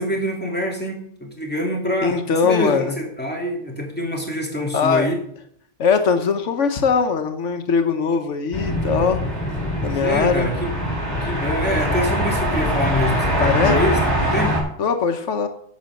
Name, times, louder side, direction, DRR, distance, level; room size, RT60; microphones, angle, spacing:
voice 1, 0.0-2.2 2.4-5.2 10.0-10.7 11.2-14.6, equal, 10° left, -1 dB, 3.0 m, -25 dB
voice 2, 2.0-2.9 4.7-5.1 5.8-9.2 9.8-10.5 13.4-13.8 14.8-15.5, left 5 dB, 85° left, 7 dB, 1.3 m, -20 dB
sound 1, 8.5-14.6, equal, 35° left, 5.9 m, -22 dB
11.0 x 6.2 x 7.7 m, 0.67 s
omnidirectional pair, 1.2 m